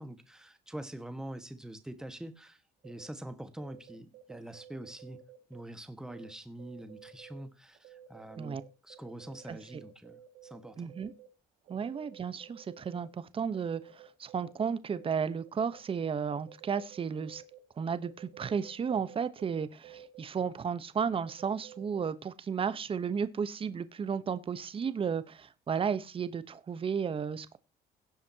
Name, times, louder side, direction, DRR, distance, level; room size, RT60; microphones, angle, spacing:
voice 1, 0.0-5.2 5.5-10.9 11.8-11.9, right 1 dB, 5° right, 1.5 m, -45 dB
sound 1, 2.8-3.1 3.4-5.6 6.1-6.3 6.6-7.4 7.7-11.3 11.6-13.1 13.5-15.1 15.4-17.6 18.0-22.0, right 11 dB, 80° right, 2.2 m, -53 dB
voice 2, 10.8-11.1 11.7-13.8 14.2-17.4 17.8-27.6, right 6 dB, 30° right, 1.0 m, -33 dB
17.5 x 7.6 x 2.9 m
cardioid pair, 110°, 17 cm